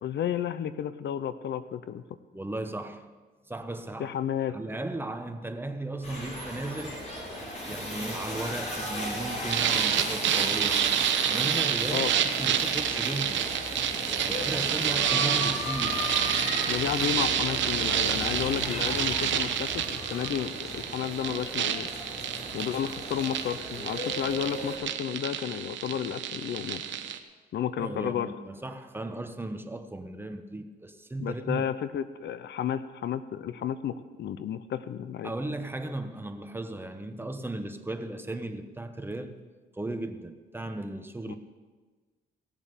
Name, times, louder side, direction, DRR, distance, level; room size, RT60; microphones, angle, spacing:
voice 1, 0.0-2.0 4.0-4.6 11.9-12.1 16.7-21.9 22.5-26.8 27.5-28.3 31.2-35.3 41.3-41.4, left 9 dB, 65° left, 13 dB, 0.7 m, -32 dB
voice 2, 2.3-3.1 3.5-4.1 4.5-7.1 7.6-13.4 14.3-16.0 27.8-31.7 35.2-39.3 39.7-41.4, right 2 dB, 10° right, 7 dB, 1.1 m, -36 dB
sound 1, 6.0-24.8, left 1 dB, 35° left, 5.1 m, -36 dB
sound 2, 9.5-27.2, right 9 dB, 70° right, 1.0 m, -29 dB
17.5 x 7.3 x 6.8 m, 1.4 s
cardioid pair, 90°, 20 cm